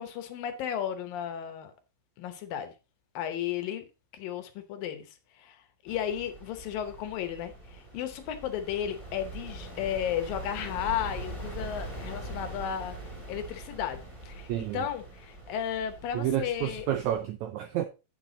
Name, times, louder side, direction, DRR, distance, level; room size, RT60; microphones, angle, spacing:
voice 1, 0.0-1.7 2.2-2.7 3.1-3.9 4.1-13.0 13.3-16.9, left 9 dB, 80° left, 2.7 m, -34 dB
sound 1, 5.9-17.2, right 2 dB, 15° right, 2.2 m, -42 dB
voice 2, 14.5-14.9 16.1-17.8, right 11 dB, 90° right, 1.6 m, -30 dB
8.9 x 6.1 x 3.9 m
omnidirectional pair, 4.1 m